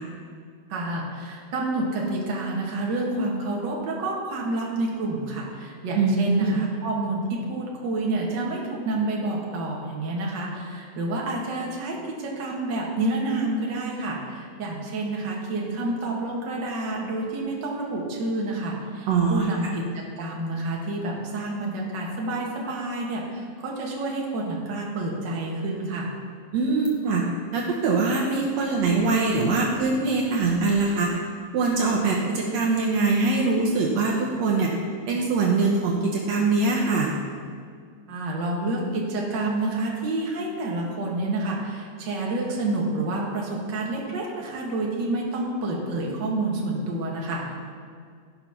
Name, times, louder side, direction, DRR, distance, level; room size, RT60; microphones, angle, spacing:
voice 1, 0.7-19.8 20.2-26.1 38.1-47.5, right 2 dB, 45° right, -3 dB, 2.0 m, -29 dB
voice 2, 5.9-6.5 19.1-19.5 26.5-27.2 27.5-31.1 31.5-34.7 35.1-37.1, right 3 dB, 70° right, -2 dB, 2.1 m, -23 dB
14.0 x 5.7 x 5.8 m, 2.1 s
omnidirectional pair, 3.4 m